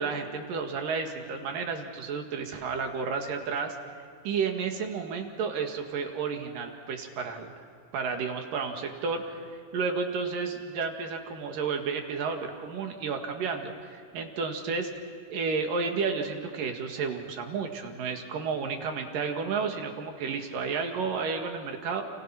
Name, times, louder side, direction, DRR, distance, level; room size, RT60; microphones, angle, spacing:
voice 1, 0.0-3.8 4.3-7.7 7.9-14.9 15.3-22.0, right 5 dB, 80° right, 4 dB, 3.7 m, -32 dB
29.0 x 29.0 x 6.0 m, 2.4 s
omnidirectional pair, 3.9 m